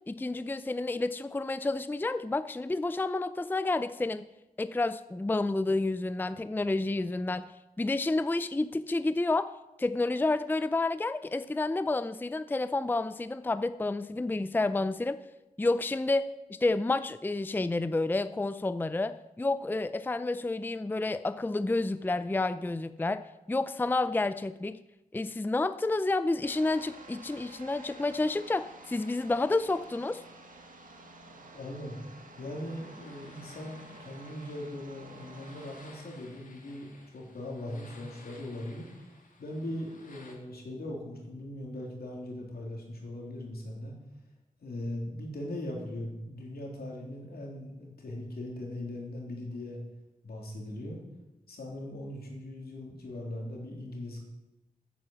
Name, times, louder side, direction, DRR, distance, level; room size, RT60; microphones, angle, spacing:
voice 1, 0.1-4.3 4.6-7.5 7.8-9.5 9.8-15.2 15.6-24.8 25.1-30.2, left 2 dB, 15° left, 13 dB, 0.4 m, -30 dB
sound 1, 26.4-35.9, right 2 dB, 60° right, 1.9 m, -51 dB
voice 2, 31.3-32.0 32.4-38.9 39.4-43.9 44.6-49.8 50.2-51.0 51.5-54.2, left 1 dB, 80° left, -1 dB, 3.3 m, -40 dB
sound 2, 32.6-40.3, left 2 dB, 60° left, 2.5 m, -56 dB
9.5 x 9.4 x 7.3 m, 0.97 s
wide cardioid pair, 75°, 16 cm